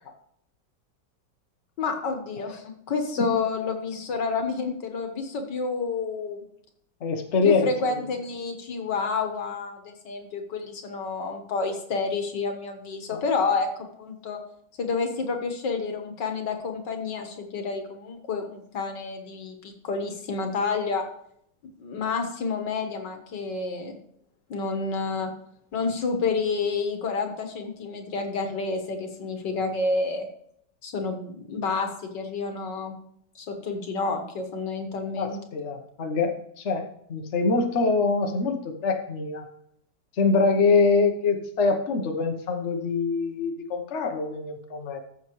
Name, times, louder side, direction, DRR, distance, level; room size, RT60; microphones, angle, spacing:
voice 1, 1.8-6.4 7.4-13.7 14.0-14.4 14.8-21.0 21.8-24.0 24.5-25.3 25.7-30.3 30.8-33.0 33.4-35.4, left 4 dB, 75° left, 5 dB, 2.0 m, -29 dB
voice 2, 7.0-7.9 13.1-13.2 35.2-39.4 40.2-45.0, left 4 dB, 45° left, 4 dB, 1.2 m, -24 dB
14.0 x 6.6 x 3.1 m, 0.69 s
omnidirectional pair, 1.9 m